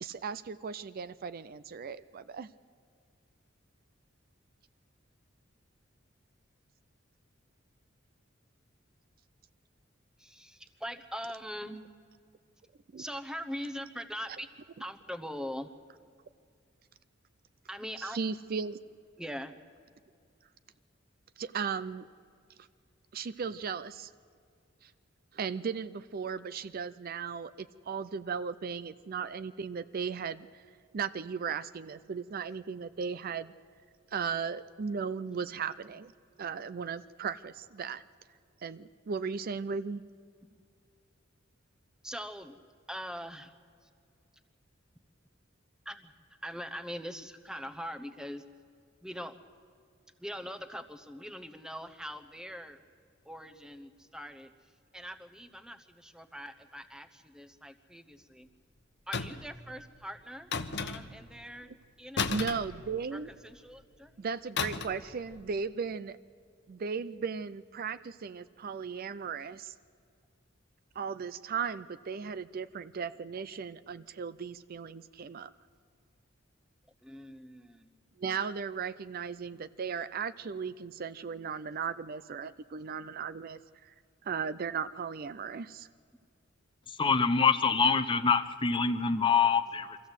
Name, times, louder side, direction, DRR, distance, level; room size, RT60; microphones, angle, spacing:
voice 1, 0.0-2.5 12.9-13.0 18.0-18.8 21.4-22.1 22.6-22.7 23.1-24.1 24.8-24.9 25.3-30.6 30.9-33.5 34.1-36.1 36.4-38.0 38.6-40.0 62.3-63.3 64.2-66.2 66.7-69.7 71.0-75.5 78.2-83.9 84.2-85.9, right 6 dB, 45° right, 15 dB, 0.4 m, -36 dB
voice 2, 10.2-11.8 13.0-14.5 14.8-15.7 17.7-18.2 19.2-19.5 42.0-42.6 42.9-43.5 45.8-46.1 46.4-48.4 49.0-49.3 50.2-52.8 53.2-54.5 54.9-58.5 59.1-60.5 60.8-61.7 62.0-62.4 63.1-64.2 77.0-77.9, equal, 5° right, 9 dB, 0.9 m, -42 dB
sound 1, 59.1-59.6 60.5-61.3 62.2-63.3 64.6-65.1 65.3-65.6, left 5 dB, 60° left, 1.0 m, -34 dB
voice 3, 87.0-90.0, left 5 dB, 25° left, 9 dB, 0.7 m, -25 dB
23.5 x 15.0 x 8.0 m, 2.3 s
head